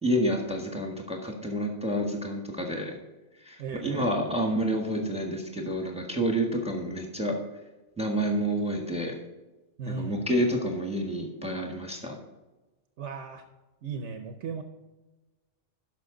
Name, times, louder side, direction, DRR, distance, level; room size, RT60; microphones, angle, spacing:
voice 1, 0.0-2.9 3.4-7.4 8.0-9.1 9.9-12.1, equal, 5° right, 2 dB, 1.4 m, -29 dB
voice 2, 3.6-4.1 9.8-10.2 13.0-13.4 13.8-14.6, right 5 dB, 80° right, 7 dB, 1.1 m, -36 dB
12.0 x 5.9 x 3.9 m, 1.1 s
omnidirectional pair, 1.2 m